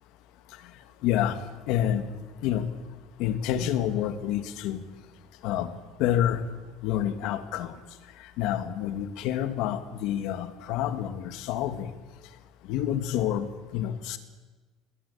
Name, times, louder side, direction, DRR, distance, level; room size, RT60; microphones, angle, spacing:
voice 1, 1.0-1.4 1.7-2.1 2.4-2.7 3.2-4.8 5.4-6.4 6.8-7.8 8.4-11.9 12.7-14.2, left 11 dB, 55° left, 10 dB, 1.8 m, -28 dB
21.5 x 20.0 x 8.4 m, 1.3 s
cardioid pair, 175°, 0 cm